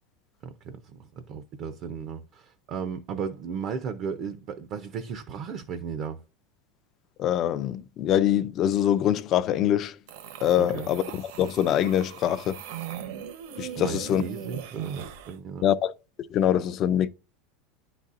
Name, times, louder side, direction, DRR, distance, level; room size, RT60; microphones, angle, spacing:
voice 1, 1.3-6.2 10.6-10.9 13.8-15.7, right 6 dB, 35° right, 0.5 m, -35 dB
voice 2, 7.2-9.9 10.4-12.6 13.6-14.2 15.6-15.9 16.3-17.1, left 10 dB, 30° left, 0.3 m, -24 dB
sound 1, 10.1-15.4, right 8 dB, 60° right, 0.8 m, -39 dB
10.0 x 4.0 x 2.4 m
supercardioid pair, 175°, 0 cm